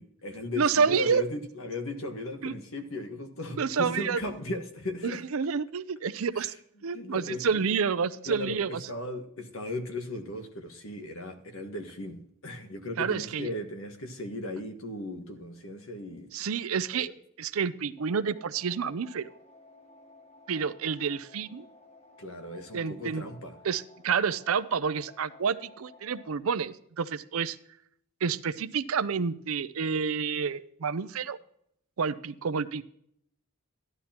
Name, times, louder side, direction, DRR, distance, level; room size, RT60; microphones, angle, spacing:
voice 1, 0.0-5.2 6.4-6.5 6.9-7.6 8.2-16.3 16.9-17.1 22.2-23.6, left 2 dB, 75° left, 5 dB, 1.5 m, -37 dB
voice 2, 0.6-1.2 2.4-2.5 3.6-4.2 5.0-6.5 6.8-8.8 13.0-13.5 16.3-17.1 17.4-19.3 20.5-21.7 22.7-23.3 23.6-27.6 28.2-31.4 32.0-32.8, right 6 dB, 80° right, 15 dB, 0.5 m, -29 dB
sound 1, 18.0-26.4, left 2 dB, 30° left, 1.5 m, -55 dB
13.5 x 11.0 x 2.9 m, 0.71 s
head